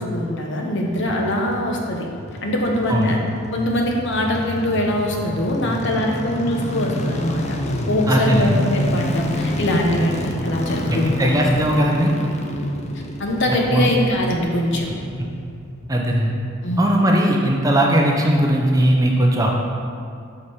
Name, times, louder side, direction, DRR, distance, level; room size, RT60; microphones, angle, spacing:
voice 1, 0.0-2.1 2.4-3.2 3.5-7.6 7.9-11.5 13.2-14.9 16.6-16.9 17.7-17.8, left 1 dB, 60° left, 1 dB, 0.9 m, -22 dB
sound 1, 0.8-16.0 16.3-16.4, left 1 dB, 35° left, 0.5 m, -28 dB
voice 2, 8.1-8.6 10.9-12.1 13.5-13.9 15.9-16.4 16.8-19.5, right 1 dB, 15° right, 0 dB, 0.6 m, -18 dB
6.4 x 4.9 x 4.3 m, 2.4 s
head